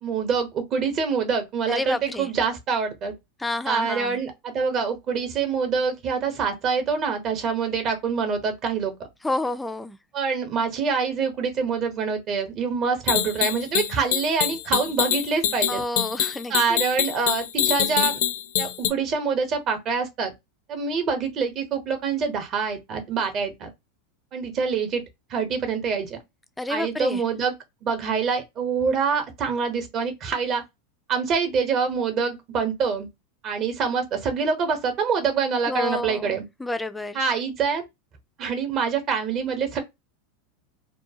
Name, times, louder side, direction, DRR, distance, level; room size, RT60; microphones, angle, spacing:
voice 1, 0.0-3.1 3.7-8.9 10.1-15.8 16.5-18.2 18.6-20.3 20.7-23.7 24.3-25.0 25.3-26.2 26.7-27.5 27.8-30.6 31.1-33.1 33.4-36.4 37.1-37.8 38.4-39.8, right 5 dB, 40° right, 0.9 m, -25 dB
voice 2, 1.7-2.3 3.4-4.2 9.2-10.0 15.7-16.8 26.6-27.2 35.7-37.2, left 2 dB, 5° left, 0.3 m, -29 dB
sound 1, 13.1-18.9, left 10 dB, 70° left, 0.5 m, -24 dB
2.5 x 2.3 x 2.7 m
hypercardioid pair, 115°, 0 cm